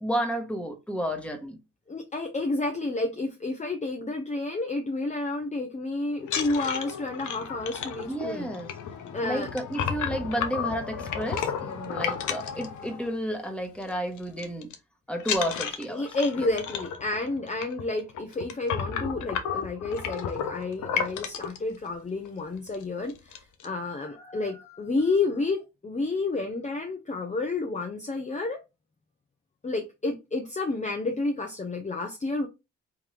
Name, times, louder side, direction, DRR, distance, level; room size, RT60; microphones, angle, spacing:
voice 1, 0.0-1.6 8.1-8.7 9.2-14.7 15.1-16.5, equal, 5° left, 1.3 m, -32 dB
voice 2, 1.9-8.5 9.1-9.5 15.9-28.6 29.6-32.5, left 3 dB, 25° left, 0.7 m, -30 dB
sound 1, 6.2-13.3 13.6-13.9 14.2-14.7 15.2-21.6 22.2-22.3 22.7-22.8 23.1-23.7, left 7 dB, 75° left, 0.8 m, -33 dB
3.5 x 3.0 x 3.2 m
supercardioid pair, 55°, 31 cm